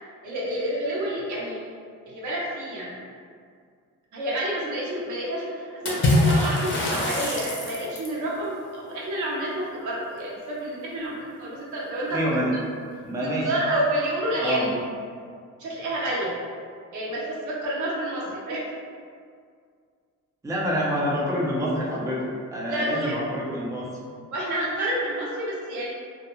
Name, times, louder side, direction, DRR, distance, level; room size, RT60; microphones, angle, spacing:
voice 1, 0.2-1.7 2.1-3.0 4.1-12.4 13.2-14.7 15.6-16.3 16.9-18.6 22.6-23.2 24.3-25.9, right 1 dB, 75° right, -5 dB, 0.8 m, -29 dB
Water / Splash splatter, 5.9-8.2, left 1 dB, 40° left, 0.6 m, -23 dB
voice 2, 12.1-12.5 13.0-13.5 14.4-14.8 20.4-22.3 22.5-23.9, equal, 10° right, -5 dB, 0.5 m, -27 dB
2.3 x 2.2 x 2.9 m, 2.1 s
cardioid pair, 90°, 30 cm